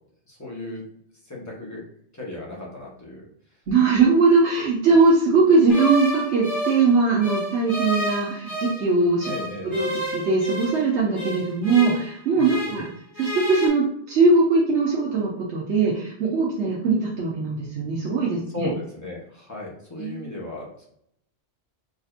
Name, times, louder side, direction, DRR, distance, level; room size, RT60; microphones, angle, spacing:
voice 1, 0.3-0.8 1.2-1.8 2.1-3.3 4.9-5.0 9.2-9.8 12.3-12.8 18.5-20.8, left 2 dB, 15° left, -4 dB, 1.2 m, -35 dB
voice 2, 3.7-9.3 9.6-12.9 13.2-18.7 20.0-20.3, right 4 dB, 80° right, -4 dB, 1.1 m, -20 dB
sound 1, 5.7-8.9 9.2-12.9 13.1-13.7, equal, 90° left, 1.7 m, -31 dB
5.1 x 2.7 x 2.4 m, 0.70 s
omnidirectional pair, 1.1 m